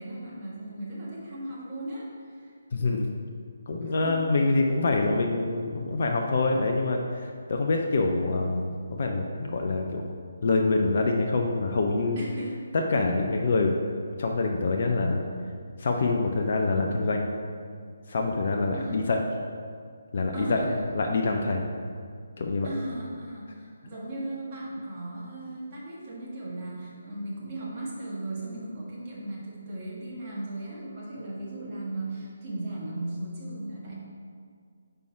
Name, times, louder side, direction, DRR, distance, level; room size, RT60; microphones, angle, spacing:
voice 1, 0.0-2.5 3.8-4.2 12.1-12.5 18.7-19.0 20.3-20.8 22.6-34.0, right 1 dB, 30° right, -6 dB, 1.5 m, -37 dB
voice 2, 2.7-3.2 3.7-10.0 10.4-12.2 12.7-13.8 14.2-15.3 15.8-17.3 18.1-19.2 20.1-21.7 22.4-22.7, left 3 dB, 45° left, 1 dB, 0.5 m, -26 dB
5.3 x 4.4 x 4.6 m, 2.1 s
figure-of-eight pair, 145°, 0 cm